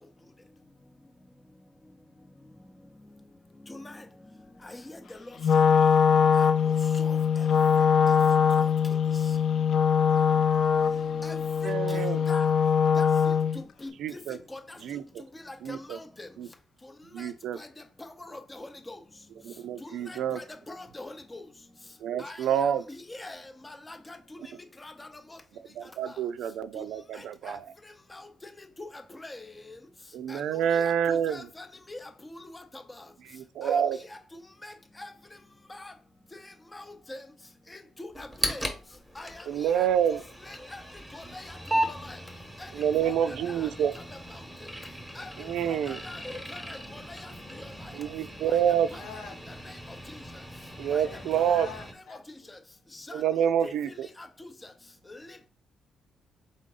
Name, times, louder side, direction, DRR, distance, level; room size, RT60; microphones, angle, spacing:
Wind instrument woodwind instrument, 5.4-13.6, left 7 dB, 60° left, 0.3 m, -22 dB
voice 1, 11.6-12.2 14.0-14.4 14.8-15.0 15.6-16.0 16.4-16.5 17.1-17.6 19.4-20.4 22.0-22.8 25.8-27.6 30.1-31.5 33.3-34.0 39.5-40.2 42.7-43.9 45.4-46.0 47.9-48.9 50.8-51.7 53.1-54.1, right 9 dB, 80° right, 0.4 m, -27 dB
voice 2, 15.5-16.3 18.3-19.0 20.1-21.4 22.2-22.4 23.1-23.4 23.6-24.2 24.8-25.1 27.5-27.6 28.8-28.9 29.2-29.5 30.3-30.4 30.7-30.9 31.3-32.0 33.6-33.7 34.6-34.7 35.0-35.1 35.7-35.9 36.7-36.8 37.1-37.2 38.0-38.6 39.2-39.3 39.8-39.9 40.5-40.8 41.1-41.4 41.9-42.2 42.6-42.7 43.0-43.1 45.2-45.3 46.1-46.2 46.5-46.6 46.9-47.0 48.9-49.0 50.9-51.0 51.3-51.5 54.2-54.3, left 2 dB, 20° left, 0.7 m, -42 dB
sound 1, 38.1-51.9, equal, ahead, 1.1 m, -37 dB
voice 3, 48.6-49.5 51.0-52.5, left 5 dB, 85° left, 2.0 m, -45 dB
3.7 x 3.6 x 3.8 m
cardioid pair, 90°, 0 cm